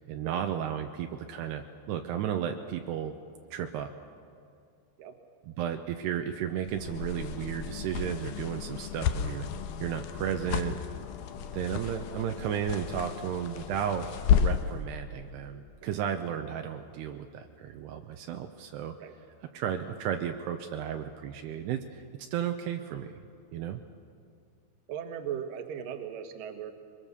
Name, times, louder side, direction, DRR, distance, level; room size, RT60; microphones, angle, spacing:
voice 1, 0.1-3.1 3.5-3.9 5.5-9.5 9.8-10.8 11.5-14.1 14.4-19.0 19.5-22.0 22.3-23.2 23.5-23.8, right 9 dB, 80° right, 5 dB, 2.8 m, -33 dB
sound 1, 6.7-14.7, left 8 dB, 80° left, 1.8 m, -32 dB
voice 2, 24.9-26.7, right 8 dB, 65° right, 6 dB, 2.6 m, -38 dB
23.0 x 22.0 x 6.8 m, 2.4 s
omnidirectional pair, 4.9 m